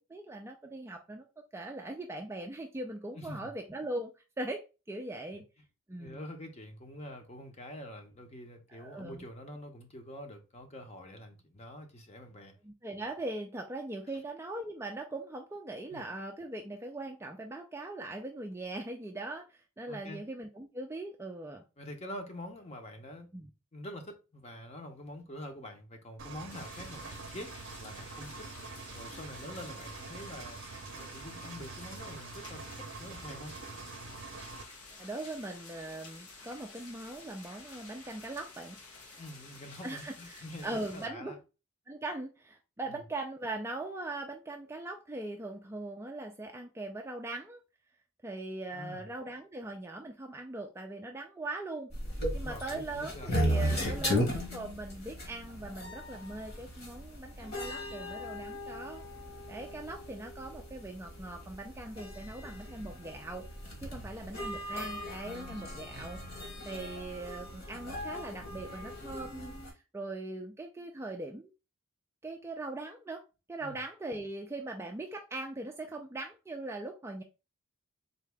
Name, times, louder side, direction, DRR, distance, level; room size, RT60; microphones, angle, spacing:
voice 1, 0.1-1.3 1.5-4.1 4.4-4.6 4.9-5.4 5.9-6.2 8.7-9.2 12.6-21.6 23.3-23.5 35.0-38.8 39.1-39.2 39.8-41.3 41.9-47.6 48.2-51.9 52.3-59.0 59.5-63.4 63.8-71.5 72.2-73.2 73.5-77.2, right 2 dB, 10° right, 0.3 m, -40 dB
voice 2, 3.1-3.5 6.0-12.5 15.9-16.0 19.9-20.2 21.8-23.3 23.7-28.5 28.9-30.6 31.0-33.5 39.2-41.4 42.9-43.0 48.7-49.1 52.3-54.2 63.8-64.1 73.6-73.8, left 1 dB, 30° left, 0.7 m, -46 dB
Engine, 26.2-34.6, right 4 dB, 55° right, 0.6 m, -45 dB
sound 1, 26.5-41.1, left 3 dB, 85° left, 1.0 m, -51 dB
sound 2, 51.9-69.7, equal, 45° left, 1.4 m, -37 dB
4.0 x 2.8 x 3.4 m
head